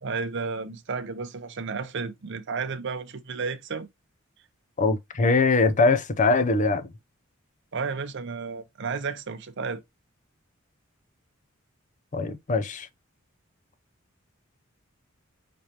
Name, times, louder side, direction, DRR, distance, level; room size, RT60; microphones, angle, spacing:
voice 1, 0.0-3.9 7.7-9.8, right 4 dB, 60° right, 0.6 m, -32 dB
voice 2, 4.8-6.9 12.1-12.9, left 3 dB, 40° left, 0.5 m, -22 dB
5.1 x 3.2 x 2.8 m
head